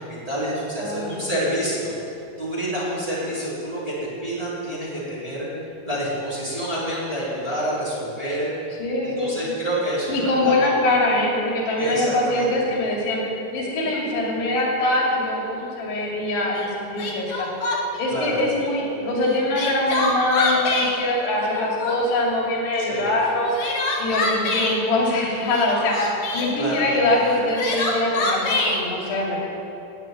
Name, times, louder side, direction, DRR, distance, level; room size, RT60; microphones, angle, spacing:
voice 1, 0.0-1.9 2.4-5.5 5.8-8.5 9.0-10.7 11.8-12.5 18.1-18.4 22.8-23.1 26.5-27.2, equal, 10° right, -9 dB, 3.5 m, -28 dB
voice 2, 0.8-1.3 8.8-9.3 10.1-17.5 18.0-23.6 24.0-29.5, left 1 dB, 80° left, -3 dB, 4.7 m, -23 dB
Crying sobbing, 16.6-16.7 17.0-18.0 19.3-20.9 21.4-22.2 23.3-24.8 25.5-26.5 27.3-28.8, left 3 dB, 60° left, 1.5 m, -25 dB
10.5 x 10.0 x 9.2 m, 2.9 s
omnidirectional pair, 4.7 m